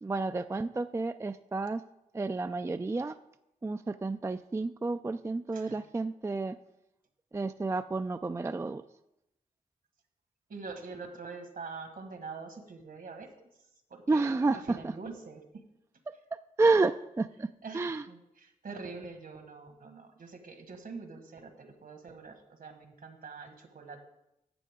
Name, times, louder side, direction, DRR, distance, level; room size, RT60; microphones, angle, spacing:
voice 1, 0.0-1.8 2.1-3.1 3.6-6.6 7.3-8.8 14.1-14.9 16.6-17.5 17.7-18.0, right 3 dB, 20° right, 10 dB, 0.3 m, -30 dB
voice 2, 10.5-13.5 13.9-14.4 14.6-15.4 17.6-24.0, right 4 dB, 65° right, 6 dB, 1.5 m, -45 dB
12.0 x 7.5 x 3.6 m, 0.87 s
cardioid pair, 45°, 16 cm